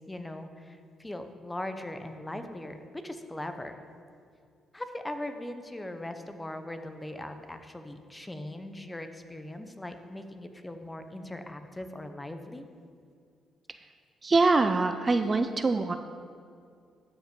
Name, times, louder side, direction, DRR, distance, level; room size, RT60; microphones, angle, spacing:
voice 1, 0.1-3.8 4.7-12.7, left 1 dB, 15° left, 7 dB, 0.8 m, -40 dB
voice 2, 14.2-16.0, right 3 dB, 30° right, 8 dB, 0.4 m, -24 dB
12.5 x 5.2 x 5.3 m, 2.3 s
cardioid pair, 90°, 0 cm